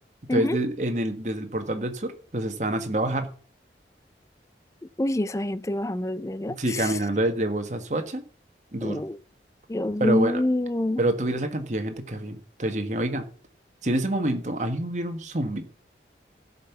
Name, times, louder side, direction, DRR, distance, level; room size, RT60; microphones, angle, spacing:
voice 1, 0.3-3.3 6.6-8.2 8.7-9.0 10.0-10.4 11.0-13.3 13.8-15.7, right 1 dB, 40° right, 1.5 m, -27 dB
voice 2, 5.0-6.9 8.8-9.2 9.7-11.0, left 1 dB, 15° left, 0.4 m, -26 dB
13.0 x 5.6 x 7.0 m
head